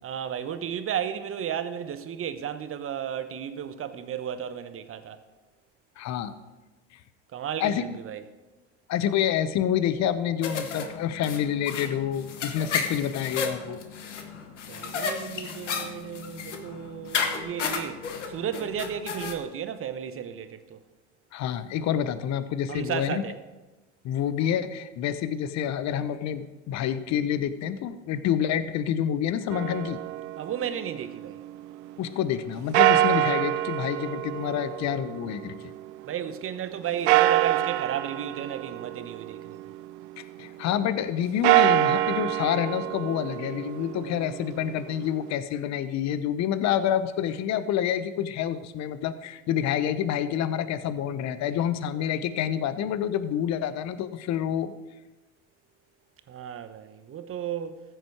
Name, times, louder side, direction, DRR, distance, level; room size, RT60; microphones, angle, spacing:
voice 1, 0.0-5.2 7.3-8.2 14.7-20.8 22.7-23.4 30.4-31.4 36.0-39.7 56.3-57.8, right 9 dB, 40° right, 1.1 m, -34 dB
voice 2, 6.0-6.3 7.6-7.8 8.9-13.8 21.3-23.2 24.0-30.0 32.0-35.6 40.2-54.7, left 9 dB, 50° left, 0.9 m, -28 dB
sound 1, 10.4-19.3, left 5 dB, 90° left, 1.2 m, -33 dB
sound 2, 29.5-31.6 32.7-36.1 37.1-40.0 41.3-45.3, right 15 dB, 75° right, 0.5 m, -26 dB
14.5 x 8.0 x 4.7 m
hypercardioid pair, 75°, 35 cm